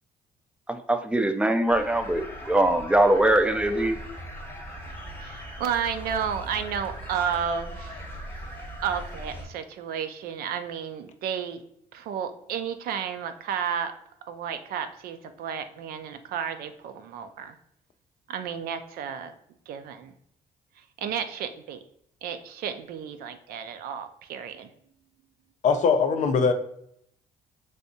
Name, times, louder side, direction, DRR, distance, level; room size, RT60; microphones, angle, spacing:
voice 1, 0.7-4.0, right 1 dB, 5° right, 8 dB, 0.3 m, -22 dB
sound 1, 1.7-9.4, equal, 15° left, 0.9 m, -39 dB
voice 2, 5.2-8.0 8.8-11.6 11.9-13.9 14.3-17.6 18.3-19.3 19.7-20.1 21.0-21.8 22.2-24.7, right 8 dB, 75° right, 9 dB, 0.4 m, -32 dB
voice 3, 25.6-26.5, left 5 dB, 50° left, 7 dB, 0.5 m, -21 dB
3.4 x 2.7 x 2.7 m, 0.72 s
cardioid pair, 85°, 16 cm